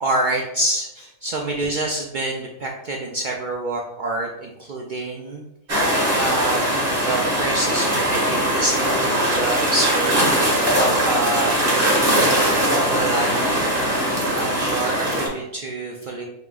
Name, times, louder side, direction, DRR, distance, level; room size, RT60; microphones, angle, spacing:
voice 1, 0.0-5.4 5.7-12.5 12.9-13.5 14.4-16.2, right 1 dB, 75° right, -1 dB, 0.4 m, -27 dB
sound 1, 5.7-15.3, right 1 dB, 45° right, 1.6 m, -20 dB
5.8 x 2.9 x 2.4 m, 0.84 s
omnidirectional pair, 1.4 m